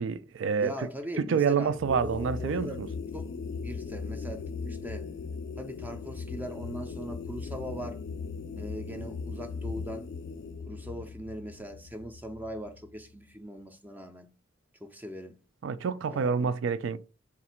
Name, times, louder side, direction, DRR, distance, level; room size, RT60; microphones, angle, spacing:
voice 1, 0.0-0.7 1.2-2.9 15.6-17.0, right 6 dB, 80° right, 0.3 m, -28 dB
voice 2, 0.6-2.8 3.1-5.1 5.6-8.0 8.5-10.1 10.7-14.3 14.8-15.4 16.0-16.5, equal, 10° right, 0.4 m, -40 dB
sound 1, 1.7-13.0, left 5 dB, 65° left, 0.4 m, -38 dB
3.6 x 2.4 x 4.2 m
head